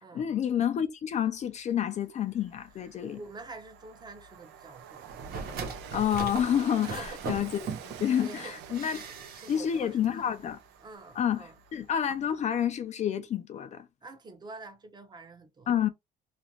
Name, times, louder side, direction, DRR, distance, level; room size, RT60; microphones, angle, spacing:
voice 1, 0.1-3.2 5.9-7.7 8.0-9.0 9.5-10.6 11.2-13.9 15.7-15.9, left 9 dB, 45° left, 0.4 m, -29 dB
Train, 1.5-1.6 2.0-12.4, right 8 dB, 90° right, 0.5 m, -48 dB
voice 2, 3.0-5.1 6.8-7.3 7.9-10.2 10.8-11.6 14.0-15.7, right 3 dB, 25° right, 0.7 m, -47 dB
sound 1, 5.1-8.1 8.7-9.8 10.0-10.1, right 5 dB, 65° right, 0.9 m, -39 dB
2.5 x 2.2 x 2.9 m
cardioid pair, 110°, 17 cm